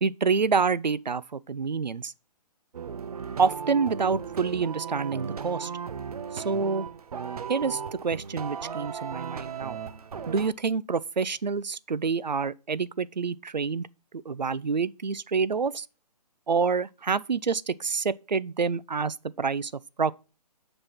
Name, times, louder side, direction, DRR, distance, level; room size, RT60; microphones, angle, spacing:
voice 1, 0.0-2.1 3.4-5.7 6.3-6.9 7.5-9.8 10.3-13.9 14.2-15.9 16.5-19.7 20.0-20.1, right 5 dB, 90° right, 0.6 m, -27 dB
sound 1, 2.7-10.5, right 6 dB, 60° right, 0.9 m, -36 dB
7.0 x 5.4 x 5.9 m
figure-of-eight pair, 140°, 21 cm